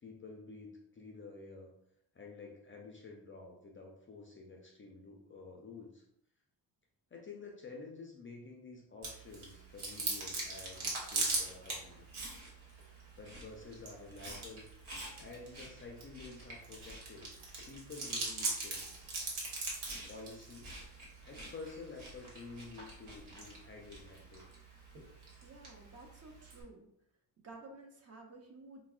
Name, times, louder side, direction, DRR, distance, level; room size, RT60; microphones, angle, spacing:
voice 1, 0.0-1.7 2.1-6.0 7.1-12.1 12.9-14.6 15.2-17.3 17.7-18.8 20.1-20.7 21.2-24.5, left 3 dB, 30° left, 0 dB, 0.3 m, -50 dB
Chewing mastication, 9.0-26.6, right 3 dB, 85° right, 1.2 m, -42 dB
voice 2, 25.4-26.9 27.4-28.8, right 2 dB, 35° right, 2 dB, 0.5 m, -53 dB
4.4 x 2.0 x 2.3 m, 0.77 s
cardioid pair, 120°, 46 cm